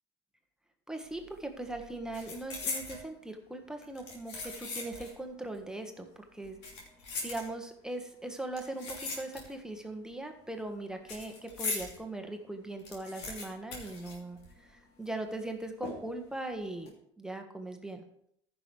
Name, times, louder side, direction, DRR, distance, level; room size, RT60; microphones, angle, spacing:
voice 1, 0.9-6.6 7.2-18.0, right 2 dB, 5° right, 4 dB, 1.5 m, -40 dB
sound 1, 1.1-1.4 1.6-3.1 3.8-5.2 5.5-5.6 6.4-7.9 8.5-9.7 10.0-12.0 12.4-12.5 12.7-14.8 15.0-15.1 15.8-16.3 16.7-16.9, left 3 dB, 70° left, 2.8 m, -40 dB
14.5 x 6.1 x 3.4 m, 0.71 s
hypercardioid pair, 75°, 15 cm